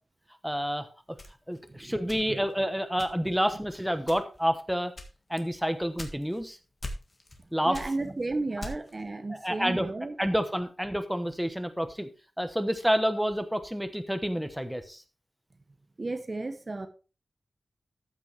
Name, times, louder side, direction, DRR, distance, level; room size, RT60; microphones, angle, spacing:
voice 1, 0.4-0.9 1.5-4.9 5.3-6.6 7.5-7.8 9.3-9.9 10.2-12.1 12.4-15.0, equal, ahead, 0.9 m, -29 dB
sound 1, 1.2-2.6 3.0-3.4 4.0-4.5 5.0-6.5 6.8-7.4 7.7-9.0, left 1 dB, 30° left, 1.7 m, -41 dB
voice 2, 7.6-10.1 16.0-16.9, right 2 dB, 35° right, 0.9 m, -33 dB
13.5 x 6.1 x 3.3 m
wide cardioid pair, 100°, 0 cm